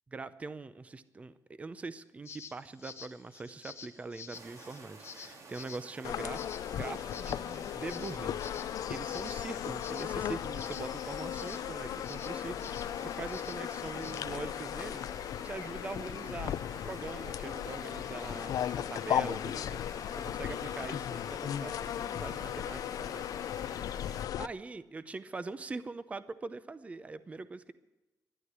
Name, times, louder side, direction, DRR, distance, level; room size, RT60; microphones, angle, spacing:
voice 1, 0.1-23.3 23.6-23.8 24.4-27.7, right 3 dB, 20° right, 14 dB, 0.6 m, -43 dB
sound 1, 2.3-14.2, left 6 dB, 40° left, 1.1 m, -50 dB
sound 2, 4.3-24.3, right 3 dB, 55° right, 2.0 m, -52 dB
sound 3, 6.0-24.5, left 10 dB, 65° left, 0.4 m, -36 dB
12.5 x 11.5 x 9.6 m, 1.1 s
wide cardioid pair, 165°, 7 cm